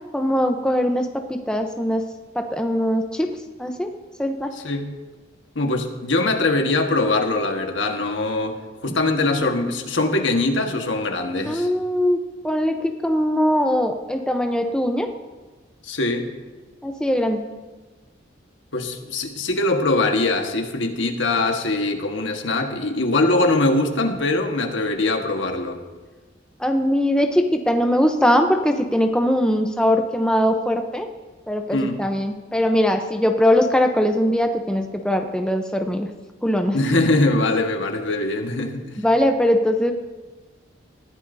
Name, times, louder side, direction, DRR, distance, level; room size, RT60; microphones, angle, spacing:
voice 1, 0.1-2.1 2.3-3.3 3.6-3.9 4.2-4.5 11.5-15.1 16.8-17.4 26.6-31.1 31.5-36.1 36.4-36.8 39.0-39.9, equal, 5° left, 4 dB, 0.7 m, -21 dB
voice 2, 4.5-4.9 5.5-11.7 15.8-16.3 18.7-25.8 31.7-32.1 36.7-39.0, left 2 dB, 80° left, 3 dB, 1.5 m, -22 dB
19.5 x 14.5 x 2.7 m, 1.3 s
head